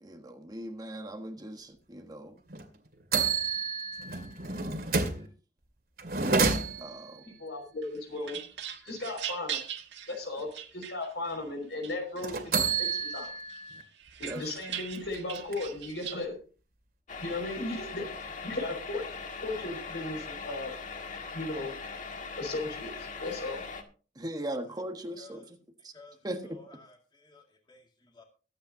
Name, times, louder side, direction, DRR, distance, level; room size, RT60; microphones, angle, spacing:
voice 1, 0.0-2.3 6.8-7.2 14.3-14.4 24.2-25.4 26.2-26.6, right 1 dB, 20° right, 5 dB, 1.3 m, -38 dB
sound 1, 2.5-2.6 3.1-5.3 6.0-7.1 12.2-13.8 14.2-14.3 14.7-15.8, right 4 dB, 55° right, 2.4 m, -29 dB
voice 2, 7.2-8.4 8.8-9.6 10.1-13.3 14.2-16.4 17.2-18.1 18.4-19.0 19.4-20.7 21.3-21.7 22.4-23.7, left 2 dB, 70° left, 3 dB, 5.5 m, -36 dB
sound 2, 7.8-11.4 11.8-12.7 13.1-16.2, right 10 dB, 80° right, 1.7 m, -41 dB
sound 3, 17.1-23.8, left 4 dB, 45° left, 1.8 m, -40 dB
voice 3, 25.2-25.5 25.9-26.2 26.4-28.2, left 4 dB, 25° left, 1 dB, 2.2 m, -54 dB
22.5 x 8.9 x 2.8 m, 0.37 s
head